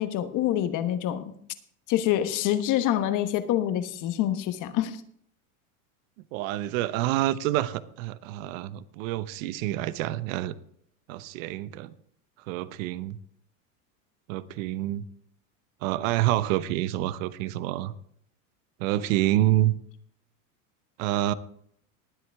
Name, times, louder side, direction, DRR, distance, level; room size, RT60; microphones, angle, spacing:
voice 1, 0.0-1.3 1.9-5.0, left 12 dB, 45° left, 10 dB, 1.3 m, -26 dB
voice 2, 6.3-10.6 11.1-11.9 12.5-13.2 14.3-15.0 15.8-17.9 18.8-19.8 21.0-21.3, right 14 dB, 65° right, 15 dB, 0.9 m, -27 dB
20.0 x 8.0 x 3.5 m, 0.65 s
supercardioid pair, 115°, 43 cm